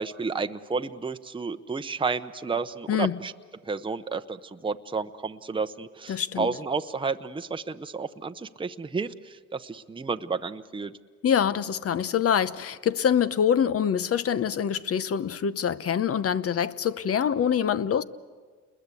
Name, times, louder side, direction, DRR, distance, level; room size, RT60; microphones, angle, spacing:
voice 1, 0.0-3.3 3.7-10.9, right 4 dB, 15° right, 0.8 m, -31 dB
voice 2, 2.9-3.2 6.1-6.5 11.2-18.0, left 8 dB, 50° left, 0.9 m, -25 dB
29.0 x 21.5 x 8.4 m
cardioid pair, 90°, 30 cm